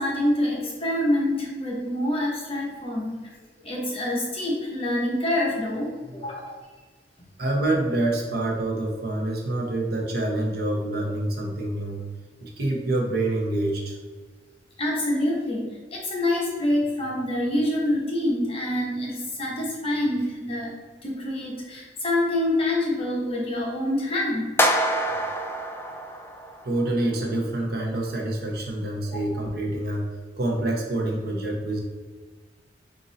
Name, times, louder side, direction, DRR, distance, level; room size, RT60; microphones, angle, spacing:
voice 1, 0.0-3.2 3.6-6.5 14.8-20.7 21.0-24.5 29.0-29.2, left 1 dB, 35° left, -3 dB, 1.0 m, -26 dB
voice 2, 7.4-12.0 12.4-14.0 26.6-31.8, right 1 dB, 60° right, 0 dB, 0.8 m, -26 dB
sound 1, 24.6-26.8, equal, 15° left, 0.3 m, -25 dB
4.0 x 2.7 x 3.9 m, 1.4 s
head